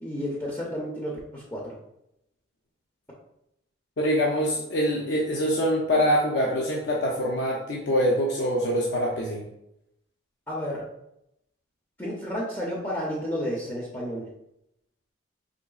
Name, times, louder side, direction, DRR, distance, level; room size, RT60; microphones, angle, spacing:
voice 1, 0.0-1.7 10.5-10.9 12.0-14.2, equal, 10° left, -5 dB, 0.5 m, -31 dB
voice 2, 4.0-9.5, equal, 65° left, -2 dB, 0.5 m, -24 dB
3.8 x 3.0 x 2.3 m, 0.81 s
head